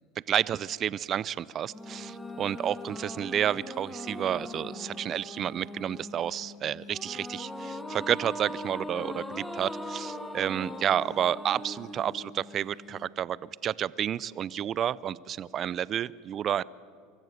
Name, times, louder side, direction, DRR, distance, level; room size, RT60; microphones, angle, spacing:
voice 1, 0.3-16.6, right 10 dB, 40° right, 21 dB, 0.4 m, -30 dB
sound 1, 1.7-13.1, left 1 dB, 5° left, 1.6 m, -40 dB
24.5 x 14.0 x 8.1 m, 2.3 s
hypercardioid pair, 95°, 0 cm